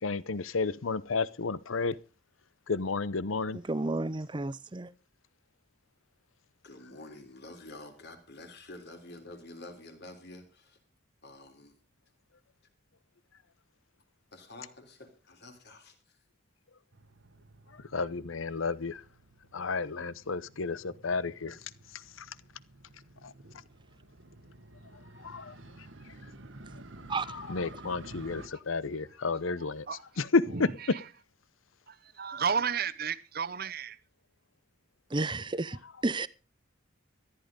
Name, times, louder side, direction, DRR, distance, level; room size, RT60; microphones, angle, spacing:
voice 1, 0.0-2.0 2.7-3.6 17.7-19.1 19.5-22.4 23.2-23.3 24.9-26.2 27.1-29.9 30.2-30.7 35.8-35.9, left 4 dB, 85° left, 0.8 m, -32 dB
voice 2, 3.7-4.9 27.1-27.3 35.1-36.3, right 2 dB, 25° right, 0.6 m, -32 dB
voice 3, 6.6-10.8 11.2-11.8 14.3-16.2, left 2 dB, 55° left, 3.5 m, -49 dB
Motorcycle, 16.9-28.5, right 2 dB, 70° right, 1.3 m, -52 dB
voice 4, 31.9-34.0, right 6 dB, 50° right, 0.9 m, -32 dB
14.5 x 11.5 x 5.2 m
head